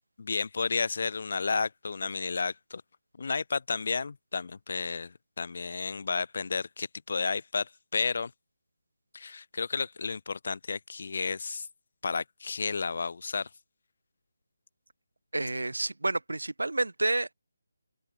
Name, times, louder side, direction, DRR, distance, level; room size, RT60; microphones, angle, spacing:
voice 1, 0.2-2.8 3.2-8.3 9.1-11.7 12.0-13.5, left 4 dB, 55° left, 0.4 m, -32 dB
voice 2, 15.3-17.3, right 2 dB, 85° right, 0.8 m, -29 dB
figure-of-eight pair, 160°, 0 cm